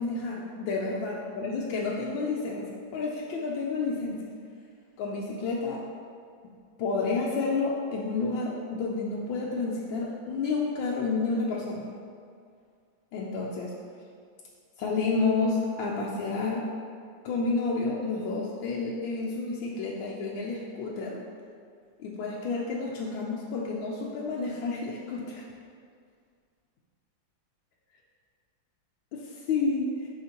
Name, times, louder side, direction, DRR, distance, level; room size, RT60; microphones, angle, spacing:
voice 1, 0.0-4.2 5.0-5.8 6.8-11.9 13.1-13.7 14.8-16.7 17.2-21.2 22.0-25.4 29.1-30.1, left 3 dB, 80° left, -4 dB, 1.4 m, -30 dB
10.0 x 4.3 x 2.9 m, 2.2 s
omnidirectional pair, 2.1 m